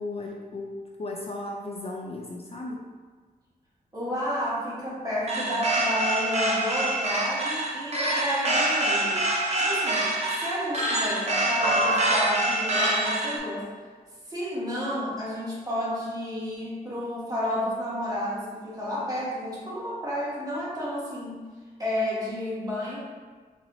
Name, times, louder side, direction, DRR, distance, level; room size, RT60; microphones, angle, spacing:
voice 1, 0.0-2.9, left 2 dB, 35° left, -1 dB, 0.3 m, -35 dB
voice 2, 3.9-9.2 9.6-10.0 10.4-13.7 14.3-21.4 21.8-23.0, equal, 20° right, -7 dB, 1.3 m, -31 dB
sound 1, 5.3-13.4, right 1 dB, 40° right, 0.8 m, -25 dB
4.1 x 2.9 x 2.6 m, 1.5 s
wide cardioid pair, 90°, 16 cm